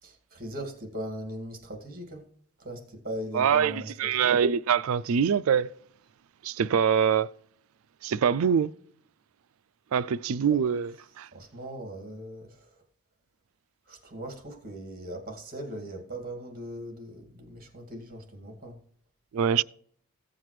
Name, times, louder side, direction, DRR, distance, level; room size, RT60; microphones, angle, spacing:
voice 1, 0.0-2.3 2.6-4.4 10.5-10.7 11.3-12.8 13.9-18.8, right 1 dB, 40° right, 2.1 m, -39 dB
voice 2, 3.3-5.7 6.4-7.3 8.0-8.7 9.9-10.9 11.2-11.3 19.3-19.6, right 7 dB, 70° right, 0.4 m, -24 dB
15.5 x 7.6 x 3.2 m
head